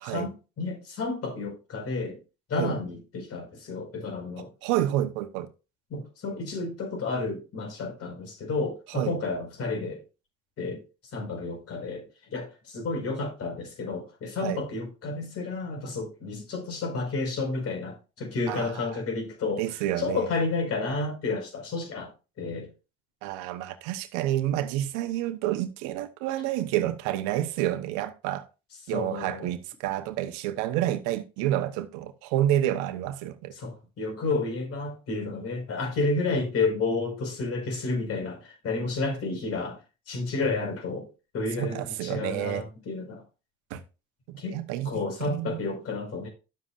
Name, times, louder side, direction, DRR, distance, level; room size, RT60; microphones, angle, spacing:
voice 1, 0.0-2.2 2.5-4.5 5.9-10.0 10.6-10.8 11.1-22.1 22.4-22.7 28.9-29.5 33.6-39.8 40.1-41.1 41.3-43.2 44.4-44.6 44.8-46.3, left 3 dB, 55° left, 5.0 m, -31 dB
voice 2, 4.6-5.5 8.9-9.2 14.4-14.6 18.5-19.0 19.6-20.3 23.2-28.4 28.9-33.5 41.6-42.6 43.7-43.8 44.3-44.9 45.2-45.6, right 13 dB, 75° right, 1.1 m, -29 dB
11.5 x 7.5 x 2.5 m
hypercardioid pair, 70°, 30 cm